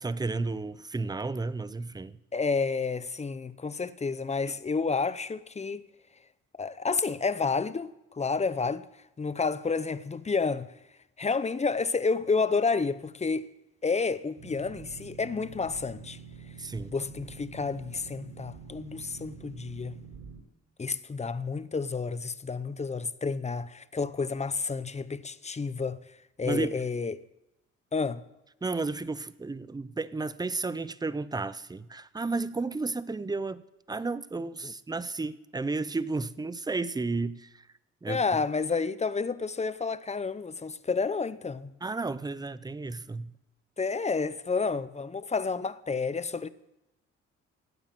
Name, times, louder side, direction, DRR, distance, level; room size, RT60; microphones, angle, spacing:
voice 1, 0.0-2.2 16.6-16.9 26.4-26.7 28.6-33.6 33.9-37.5 38.0-38.2 41.8-43.3, right 3 dB, 15° right, 0.7 m, -32 dB
voice 2, 2.3-5.9 6.6-8.9 9.2-10.7 11.2-13.5 13.8-16.2 16.9-20.0 20.8-26.0 26.4-27.2 27.9-28.2 34.6-34.7 38.1-41.7 43.8-46.5, left 4 dB, 20° left, 0.8 m, -30 dB
Boat Water vehicle, 14.4-20.4, right 6 dB, 50° right, 3.9 m, -47 dB
17.0 x 9.4 x 7.5 m
cardioid pair, 90°, 30 cm